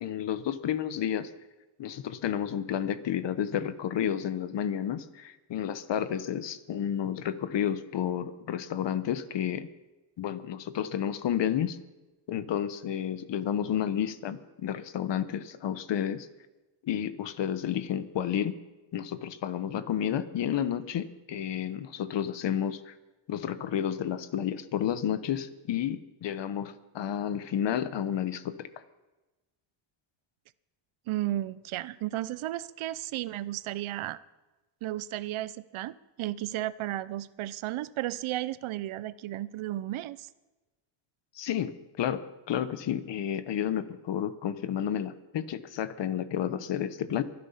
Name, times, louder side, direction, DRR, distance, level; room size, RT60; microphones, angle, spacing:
voice 1, 0.0-1.3 1.8-9.7 10.2-11.8 12.3-16.3 16.8-18.5 18.9-22.9 23.3-28.7 41.3-42.2 42.5-47.2, left 9 dB, 60° left, 13 dB, 1.1 m, -31 dB
voice 2, 31.1-34.2 34.8-40.3, right 14 dB, 75° right, 17 dB, 0.8 m, -34 dB
23.5 x 11.0 x 5.7 m, 1.1 s
cardioid pair, 130°, 49 cm